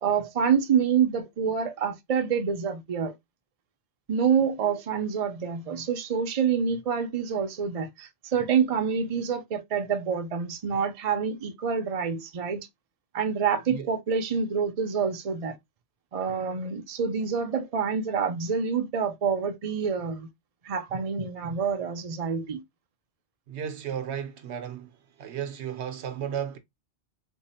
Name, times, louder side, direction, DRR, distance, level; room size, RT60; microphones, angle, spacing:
voice 1, 0.0-3.1 4.1-12.6 13.1-15.6 16.1-20.3 20.6-22.6, right 6 dB, 45° right, 0.5 m, -27 dB
voice 2, 23.5-24.9 25.2-26.6, right 8 dB, 70° right, 0.9 m, -34 dB
3.5 x 2.0 x 4.1 m
omnidirectional pair, 1.2 m